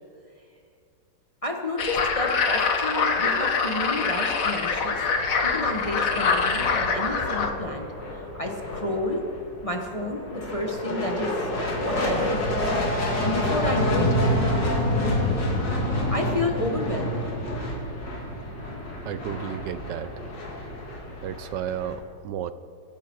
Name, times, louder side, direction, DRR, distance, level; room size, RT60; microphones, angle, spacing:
voice 1, 1.4-5.0 5.4-9.3 9.6-11.3 11.8-12.4 13.2-14.4 16.1-17.2, left 1 dB, 25° left, 2 dB, 1.0 m, -30 dB
sound 1, 1.8-7.5, left 5 dB, 55° left, 1.4 m, -24 dB
sound 2, 4.7-21.9, left 1 dB, 75° left, 3.2 m, -28 dB
voice 2, 19.0-20.1 21.2-22.5, right 10 dB, 80° right, 14 dB, 1.2 m, -32 dB
24.5 x 11.0 x 4.5 m, 2.3 s
omnidirectional pair, 1.9 m